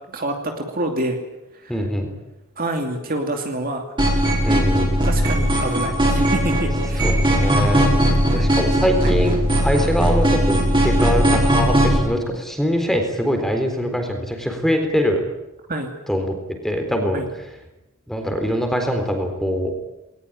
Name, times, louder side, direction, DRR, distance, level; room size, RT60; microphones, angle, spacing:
voice 1, 0.1-1.2 1.5-1.8 2.6-3.8 5.0-7.2 8.3-8.5 9.0-9.1 15.7-15.9 17.1-17.3, right 1 dB, 40° right, 4 dB, 2.6 m, -27 dB
voice 2, 1.7-2.1 4.4-5.0 7.0-7.9 8.3-15.2 16.1-16.3 16.6-17.2 18.1-19.7, equal, ahead, 4 dB, 3.9 m, -23 dB
sound 1, 4.0-12.0, equal, 20° right, 5.9 m, -18 dB
20.5 x 19.5 x 10.0 m, 0.94 s
head